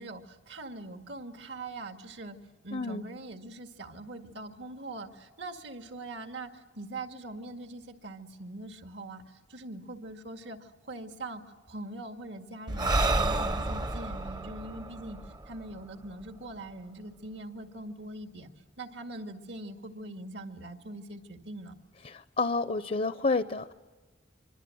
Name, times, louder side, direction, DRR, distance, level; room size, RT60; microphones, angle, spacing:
voice 1, 0.0-2.4 2.6-9.2 9.5-11.4 11.7-15.2 15.5-18.5 18.8-21.7, right 2 dB, 70° right, 6 dB, 2.0 m, -42 dB
voice 2, 2.7-3.1 22.0-23.7, left 3 dB, 40° left, 12 dB, 0.7 m, -29 dB
Breathing, 12.7-16.2, right 2 dB, 25° right, 0.8 m, -30 dB
25.5 x 24.0 x 7.8 m, 1.3 s
head